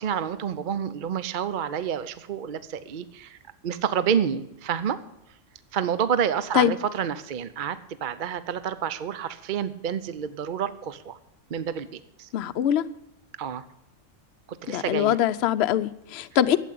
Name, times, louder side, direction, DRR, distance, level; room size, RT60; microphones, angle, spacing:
voice 1, 0.0-3.4 3.6-5.0 5.7-11.2 11.5-12.3 13.4-13.6 14.5-15.2, right 8 dB, 50° right, 14 dB, 0.7 m, -29 dB
voice 2, 12.3-12.8 14.7-16.6, left 10 dB, 65° left, 10 dB, 0.8 m, -23 dB
12.5 x 8.4 x 8.3 m, 0.83 s
omnidirectional pair, 1.3 m